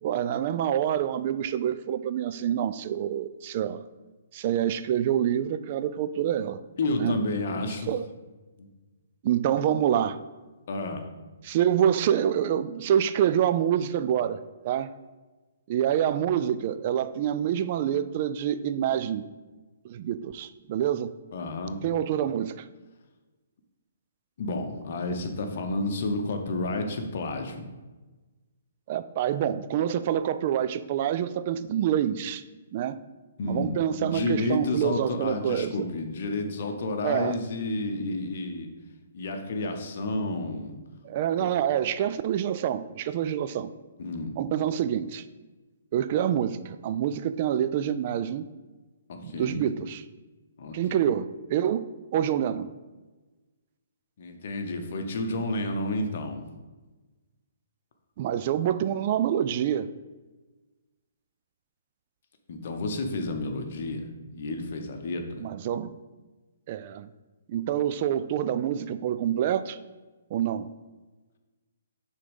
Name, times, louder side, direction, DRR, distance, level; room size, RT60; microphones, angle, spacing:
voice 1, 0.0-3.9 4.3-6.6 7.0-7.2 7.9-8.1 9.2-10.2 11.4-14.4 14.6-14.9 15.7-19.2 19.8-21.1 21.8-22.7 28.9-32.4 32.7-33.0 33.4-35.7 37.0-37.4 41.0-43.7 44.4-45.2 45.9-48.5 49.2-50.0 50.7-52.7 58.2-59.9 65.4-65.9 66.7-67.1 67.5-69.8 70.3-70.7, right 10 dB, 40° right, 13 dB, 0.3 m, -26 dB
voice 2, 6.8-7.9 8.6-8.7 10.7-11.0 21.3-21.8 24.4-27.7 33.4-38.7 39.1-40.7 41.4-41.5 44.0-44.4 49.1-49.6 50.6-50.8 54.2-56.4 62.5-65.4, left 2 dB, 55° left, 5 dB, 1.0 m, -30 dB
6.5 x 3.7 x 5.3 m, 1.2 s
hypercardioid pair, 150°, 0 cm